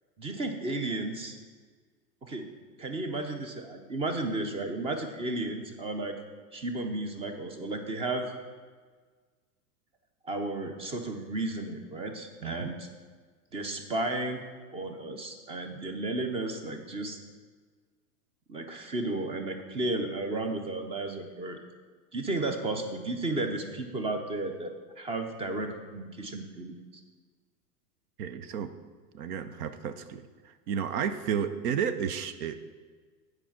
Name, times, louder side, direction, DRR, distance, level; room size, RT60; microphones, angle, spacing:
voice 1, 0.2-1.4 2.2-2.5 2.8-6.2 6.5-8.3 10.2-12.9 13.5-14.4 14.7-17.2 18.5-21.6 22.1-26.7, right 2 dB, 15° right, 6 dB, 0.4 m, -33 dB
voice 2, 28.2-28.7 29.1-30.2 30.7-32.6, right 8 dB, 65° right, 11 dB, 0.7 m, -32 dB
8.9 x 4.9 x 5.8 m, 1.5 s
hypercardioid pair, 120°, 49 cm